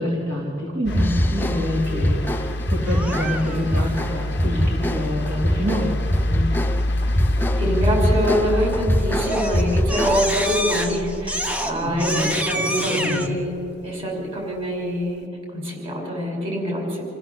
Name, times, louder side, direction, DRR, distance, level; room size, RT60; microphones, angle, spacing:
voice 1, 0.0-6.0 6.3-6.5 11.8-12.4 12.9-13.3, left 1 dB, 50° right, -4 dB, 3.1 m, -26 dB
sound 1, 0.9-13.1 14.4-14.5, left 1 dB, 60° left, 0.9 m, -27 dB
sound 2, 0.9-10.5, equal, 10° left, 0.5 m, -24 dB
Crying sobbing, 2.9-3.8 8.5-8.8 9.2-13.3, equal, 5° right, 0.9 m, -27 dB
voice 2, 7.6-13.5 13.8-17.0, equal, 30° right, 0 dB, 5.7 m, -25 dB
28.0 x 15.0 x 7.3 m, 2.7 s
head